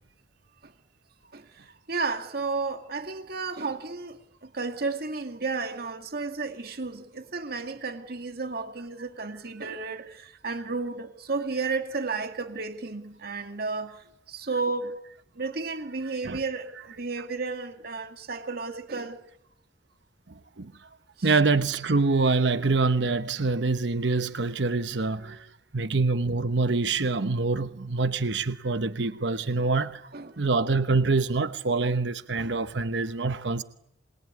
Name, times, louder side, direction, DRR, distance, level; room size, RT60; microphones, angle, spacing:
voice 1, 1.3-15.0 15.3-19.2 21.2-21.3 30.1-30.4, right 4 dB, 55° right, 2.2 m, -33 dB
voice 2, 21.2-30.0 30.4-33.6, right 3 dB, 75° right, 1.0 m, -25 dB
27.5 x 22.0 x 9.5 m
head